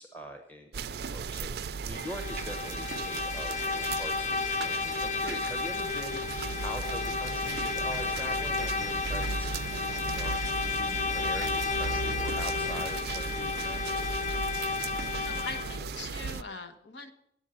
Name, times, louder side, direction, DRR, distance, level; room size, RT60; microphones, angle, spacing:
voice 1, 0.0-14.2, equal, 10° left, 4 dB, 0.8 m, -43 dB
sound 1, 0.7-16.4, right 5 dB, 60° right, 0.4 m, -36 dB
Bowed string instrument, 1.9-15.8, left 5 dB, 40° left, 0.4 m, -32 dB
voice 2, 15.2-17.1, left 3 dB, 80° left, 8 dB, 1.0 m, -41 dB
8.9 x 8.0 x 7.6 m, 0.76 s
head